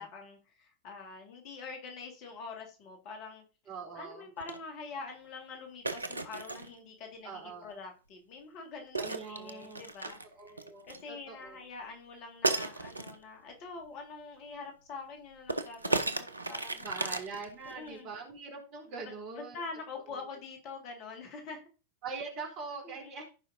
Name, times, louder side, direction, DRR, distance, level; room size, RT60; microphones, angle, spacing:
voice 1, 0.0-3.4 4.0-17.2 17.7-18.1 19.0-21.6 22.8-23.1, left 4 dB, 40° left, 3 dB, 2.0 m, -45 dB
voice 2, 3.7-4.3 7.2-7.8 9.0-9.9 10.3-11.6 16.8-19.6 22.0-23.2, right 4 dB, 40° right, 1 dB, 3.5 m, -43 dB
sound 1, 4.4-4.6 5.9-6.7 9.0-11.0 12.4-13.2 15.5-17.9, right 2 dB, 80° right, 0.7 m, -34 dB
15.0 x 5.1 x 2.7 m, 0.32 s
figure-of-eight pair, 90°, 0 cm